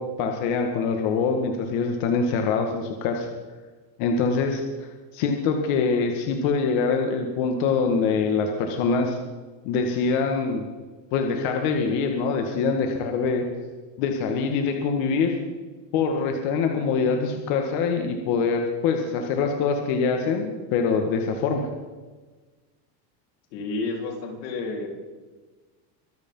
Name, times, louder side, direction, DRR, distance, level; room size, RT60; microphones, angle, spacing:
voice 1, 0.0-3.3 4.0-9.2 9.6-10.6 11.1-13.4 14.0-15.4 15.9-21.7, left 5 dB, 55° left, 3 dB, 2.0 m, -24 dB
voice 2, 23.5-24.9, left 3 dB, 90° left, 1 dB, 4.2 m, -30 dB
24.5 x 8.4 x 5.6 m, 1.3 s
cardioid pair, 165°, 49 cm